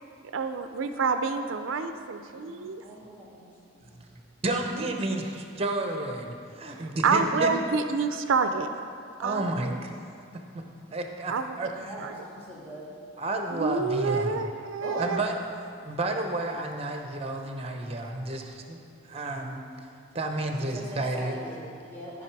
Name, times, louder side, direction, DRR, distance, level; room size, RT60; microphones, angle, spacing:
voice 1, 0.3-2.8 4.8-4.9 6.8-8.7 9.2-9.8 11.3-11.6 12.0-12.1 13.5-15.2, right 4 dB, 80° right, 8 dB, 0.4 m, -28 dB
voice 2, 2.3-3.5 3.7-4.0 9.2-9.4 11.9-12.9 14.8-15.0 20.6-22.2, right 1 dB, 10° left, -6 dB, 2.3 m, -42 dB
voice 3, 4.4-7.5 9.2-9.9 10.5-10.6 10.9-12.1 13.2-14.3 15.0-15.4 15.8-18.8 19.1-19.6 20.1-21.4, right 2 dB, 30° right, 4 dB, 0.8 m, -31 dB
13.5 x 5.3 x 4.7 m, 2.5 s
head